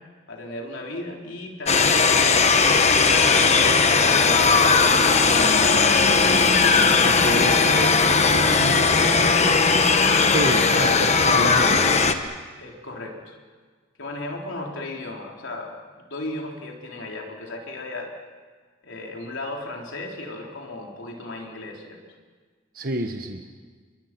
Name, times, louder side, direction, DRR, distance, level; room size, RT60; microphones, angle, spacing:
voice 1, 0.3-5.4 10.4-10.6 10.9-11.0 12.6-13.4 14.0-18.1 18.8-22.0, left 2 dB, 70° left, 0 dB, 3.7 m, -36 dB
sound 1, 1.7-12.1, left 4 dB, 35° left, 1.3 m, -18 dB
voice 2, 7.0-9.8 10.3-11.8 22.7-23.4, right 1 dB, 45° right, 4 dB, 1.3 m, -30 dB
29.5 x 23.0 x 6.0 m, 1.5 s
head